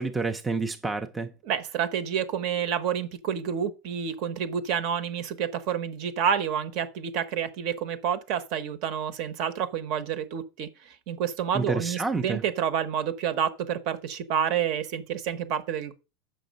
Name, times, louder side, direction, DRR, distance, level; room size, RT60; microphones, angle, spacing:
voice 1, 0.0-1.3 11.5-12.4, right 3 dB, 10° right, 0.5 m, -29 dB
voice 2, 1.4-15.9, right 8 dB, 50° right, 1.0 m, -29 dB
6.9 x 5.7 x 5.2 m
supercardioid pair, 160°, 0 cm